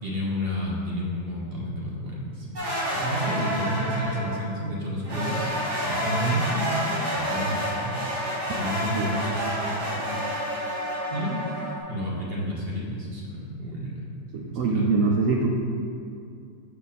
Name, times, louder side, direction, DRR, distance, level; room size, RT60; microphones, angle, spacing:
voice 1, 0.0-5.5 5.8-8.0 8.5-10.6 11.1-11.4 11.9-14.1 14.4-14.9, equal, 35° right, -4 dB, 1.1 m, -31 dB
sound 1, 2.5-4.4 5.0-11.8, equal, 60° right, 2.4 m, -29 dB
voice 2, 14.3-15.5, right 4 dB, 80° right, 0 dB, 0.7 m, -23 dB
6.5 x 5.6 x 4.2 m, 2.4 s
omnidirectional pair, 2.1 m